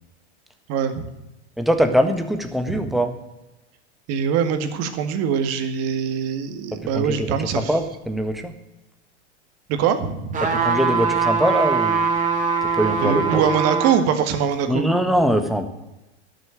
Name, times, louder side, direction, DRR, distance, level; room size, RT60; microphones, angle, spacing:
voice 1, 0.7-1.1 2.7-2.9 4.1-7.7 9.7-10.4 13.0-14.9, right 7 dB, 45° right, 9 dB, 1.9 m, -23 dB
voice 2, 1.6-3.1 6.9-8.5 10.4-12.1 12.8-13.5 14.7-15.7, equal, ahead, 6 dB, 1.5 m, -22 dB
sound 1, 10.3-14.0 14.5-14.6, right 5 dB, 20° right, 2.8 m, -22 dB
12.0 x 7.0 x 9.3 m, 0.95 s
hypercardioid pair, 115°, 34 cm